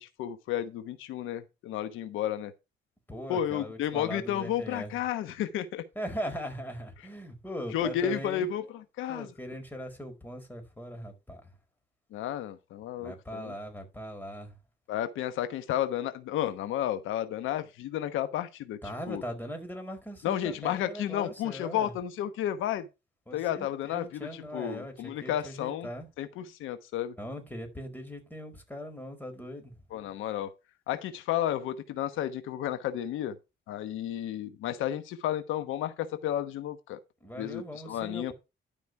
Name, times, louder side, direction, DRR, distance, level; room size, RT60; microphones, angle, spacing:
voice 1, 0.0-2.5 3.3-5.8 7.7-9.3 12.1-13.5 14.9-18.8 19.1-19.2 20.2-22.9 23.3-25.9 26.2-27.1 29.9-30.5 30.9-33.3 33.7-37.0 37.4-38.3, left 11 dB, 90° left, 1.2 m, -32 dB
voice 2, 3.1-5.0 5.9-8.5 9.1-11.5 13.0-14.6 18.8-21.9 23.3-26.1 27.2-29.8 37.2-38.3, equal, 10° left, 4.4 m, -40 dB
12.5 x 5.1 x 4.7 m
cardioid pair, 90°, 20 cm